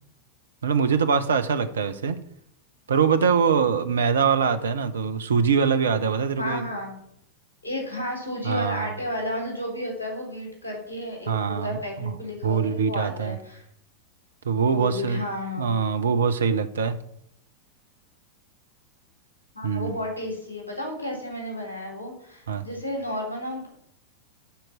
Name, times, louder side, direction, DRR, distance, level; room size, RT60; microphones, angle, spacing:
voice 1, 0.6-2.2 2.9-6.6 8.4-8.9 11.3-12.2 12.4-13.3 14.4-15.2 15.6-17.0 19.6-19.9 22.5-22.7, right 6 dB, 65° right, 10 dB, 0.9 m, -23 dB
voice 2, 6.4-7.0 7.6-13.6 14.7-15.7 19.5-23.7, left 1 dB, 80° left, 1 dB, 3.4 m, -32 dB
11.5 x 4.6 x 7.5 m, 0.73 s
figure-of-eight pair, 90°, 0 cm